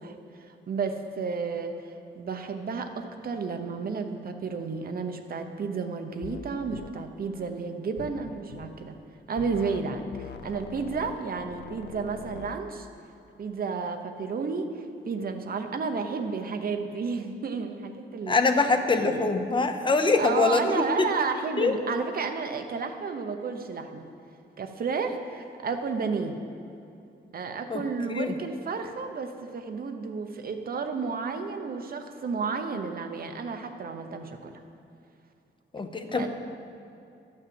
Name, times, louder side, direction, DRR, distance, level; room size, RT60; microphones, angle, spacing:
voice 1, 0.0-1.8 2.1-9.0 9.3-12.9 13.4-18.4 18.9-19.2 20.2-24.1 24.6-26.4 27.3-34.5 36.1-36.3, right 5 dB, 50° right, 6 dB, 0.9 m, -32 dB
sound 1, 6.2-6.4 6.7-6.9 8.0-8.7 9.4-9.8 10.1-12.6, left 8 dB, 65° left, 0.6 m, -42 dB
voice 2, 18.3-21.1 21.6-22.0 27.7-27.8 28.1-28.3 35.7-36.3, left 3 dB, 25° left, 6 dB, 0.8 m, -24 dB
11.5 x 6.5 x 7.7 m, 2.7 s
wide cardioid pair, 140°, 19 cm